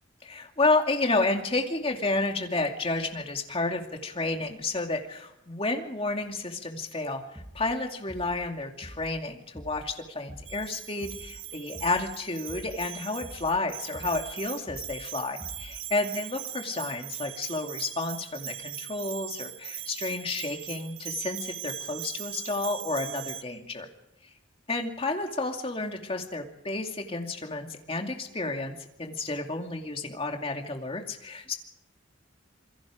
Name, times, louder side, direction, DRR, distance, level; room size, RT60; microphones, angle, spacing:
voice 1, 0.2-23.9 24.7-31.6, left 2 dB, 30° left, 3 dB, 2.5 m, -31 dB
sound 1, 7.4-7.7 8.1-8.5 8.8-9.2 9.6-9.9 10.3-10.7 11.0-11.4 11.7-12.1 12.5-12.9 13.2-13.6 13.9-14.3 14.7-15.0 15.4-15.8, equal, 5° right, 7.4 m, -45 dB
Bell, 10.5-23.4, right 11 dB, 85° right, 1.6 m, -40 dB
27.5 x 22.0 x 5.1 m, 0.82 s
head